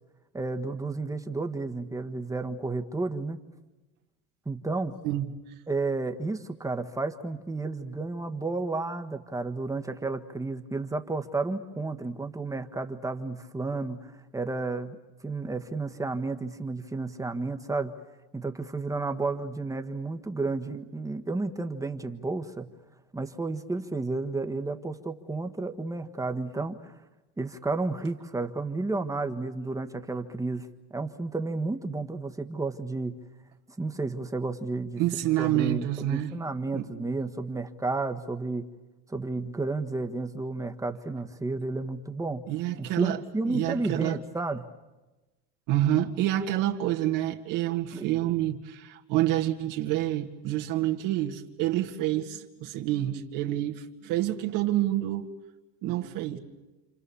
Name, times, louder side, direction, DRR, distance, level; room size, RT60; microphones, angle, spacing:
voice 1, 0.3-3.4 4.4-4.9 5.7-15.0 15.2-17.9 18.3-22.7 23.1-26.9 27.4-30.7 30.9-33.1 33.8-35.0 35.4-38.6 39.1-42.4 42.8-44.6 47.9-48.0, right 3 dB, 10° right, 1.6 m, -32 dB
voice 2, 35.0-36.3 36.7-36.9 42.5-43.2 43.5-44.2 45.7-55.3 55.8-56.4, right 14 dB, 60° right, 2.2 m, -28 dB
29.0 x 27.0 x 7.1 m
supercardioid pair, 125°, 36 cm